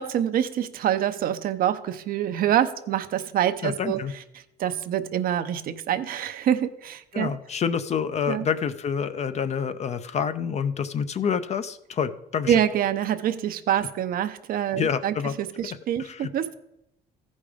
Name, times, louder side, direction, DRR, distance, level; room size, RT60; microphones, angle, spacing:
voice 1, 0.0-4.0 4.6-7.3 8.3-8.5 12.5-16.5, right 10 dB, 60° right, 10 dB, 0.7 m, -26 dB
voice 2, 3.6-4.1 7.1-12.6 14.7-15.3 15.6-16.3, left 7 dB, 40° left, 12 dB, 0.6 m, -28 dB
14.0 x 5.3 x 5.0 m, 0.83 s
cardioid pair, 110°, 17 cm